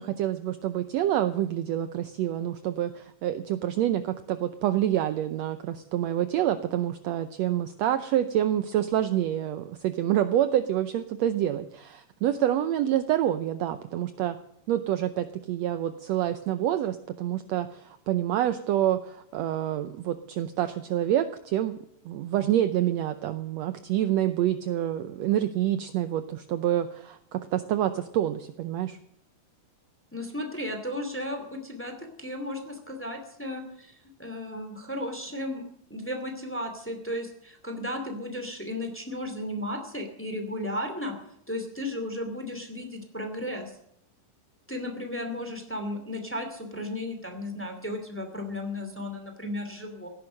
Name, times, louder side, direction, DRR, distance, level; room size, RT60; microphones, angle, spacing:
voice 1, 0.0-14.4 14.7-21.8 22.0-29.0, right 12 dB, 80° right, 10 dB, 1.6 m, -27 dB
voice 2, 30.1-35.6 35.9-41.1 41.5-43.7 44.7-50.1, left 1 dB, 5° left, 5 dB, 2.1 m, -34 dB
16.5 x 10.5 x 6.5 m, 0.73 s
omnidirectional pair, 3.8 m